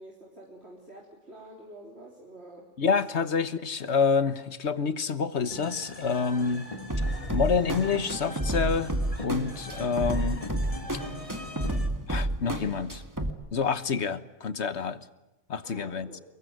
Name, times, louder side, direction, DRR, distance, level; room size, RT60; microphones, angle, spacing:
voice 1, 0.0-3.2 15.6-16.2, right 1 dB, 60° right, -1 dB, 4.0 m, -48 dB
voice 2, 2.8-6.7 7.3-10.4 12.1-13.0 13.5-15.0 15.5-16.1, left 5 dB, 65° left, 14 dB, 1.5 m, -27 dB
sound 1, 5.5-11.9, left 1 dB, 30° left, 2.4 m, -41 dB
sound 2, 6.9-13.3, right 1 dB, 15° right, 2.2 m, -31 dB
24.5 x 21.5 x 9.5 m, 1.0 s
omnidirectional pair, 1.2 m